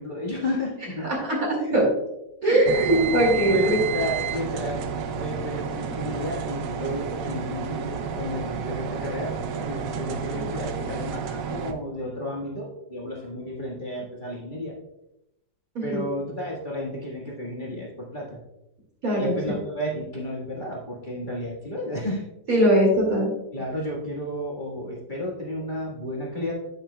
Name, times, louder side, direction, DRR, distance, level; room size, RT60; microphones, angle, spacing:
voice 1, 0.0-1.1 1.6-1.7 2.4-2.6 3.4-4.8 5.2-14.8 15.8-18.4 19.2-22.2 23.5-26.5, left 1 dB, 30° left, -4 dB, 1.6 m, -32 dB
voice 2, 1.2-1.8 2.4-3.8 15.7-16.1 19.0-19.5 22.5-23.3, right 1 dB, 50° right, -2 dB, 2.8 m, -21 dB
sound 1, 2.7-11.7, right 6 dB, 80° right, 1.4 m, -30 dB
9.2 x 8.9 x 2.2 m, 0.89 s
omnidirectional pair, 2.0 m